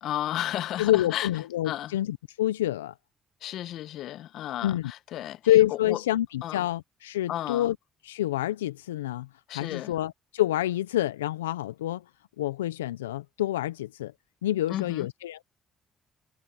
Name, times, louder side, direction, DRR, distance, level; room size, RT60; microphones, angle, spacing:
voice 1, 0.0-1.3 1.6-2.0 3.4-5.4 5.7-6.0 6.4-6.7 7.3-7.7 9.5-10.0 14.7-15.1, left 13 dB, 70° left, 1.1 m, -33 dB
voice 2, 0.8-2.9 4.6-4.9 5.4-7.8 8.0-12.0 12.4-14.1 14.4-15.4, left 14 dB, 90° left, 0.6 m, -27 dB
hypercardioid pair, 50°, 0 cm